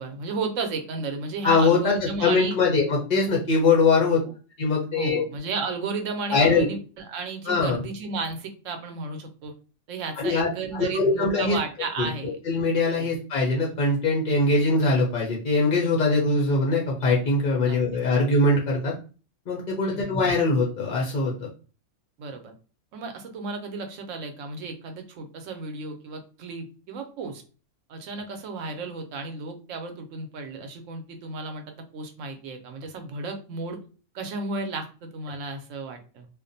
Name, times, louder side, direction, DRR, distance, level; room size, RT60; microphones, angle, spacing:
voice 1, 0.0-2.6 4.2-4.3 4.9-9.5 9.9-12.4 13.0-13.1 17.6-17.8 19.8-20.1 22.2-22.5 22.9-27.4 27.9-33.8 34.1-36.3, right 4 dB, 70° right, 5 dB, 0.9 m, -33 dB
voice 2, 1.4-1.9 2.2-4.2 4.6-5.2 6.3-6.7 7.5-7.8 10.2-10.5 10.7-11.6 12.0-12.1 12.5-18.9 19.5-21.5, left 3 dB, 60° left, -2 dB, 0.5 m, -22 dB
2.5 x 2.1 x 2.5 m, 0.35 s
omnidirectional pair, 1.4 m